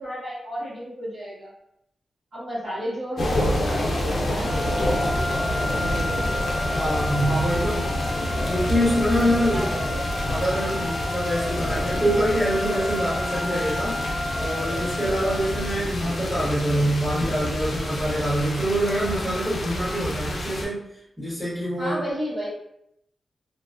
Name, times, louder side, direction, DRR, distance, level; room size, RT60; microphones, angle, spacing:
voice 1, 0.0-1.5 2.3-5.1 9.5-10.0 21.8-22.5, equal, 65° right, -14 dB, 1.2 m, -33 dB
sound 1, 3.1-15.1, right 1 dB, 85° right, 1.3 m, -39 dB
sound 2, 3.2-20.6, left 1 dB, 65° left, 0.5 m, -28 dB
sound 3, 4.4-15.9, left 1 dB, 20° left, 1.1 m, -32 dB
voice 2, 6.7-7.8 8.5-9.7 10.2-14.0 14.4-20.8 21.2-22.0, equal, 5° right, -10 dB, 1.1 m, -25 dB
2.4 x 2.2 x 2.4 m, 0.77 s
wide cardioid pair, 120°, 0 cm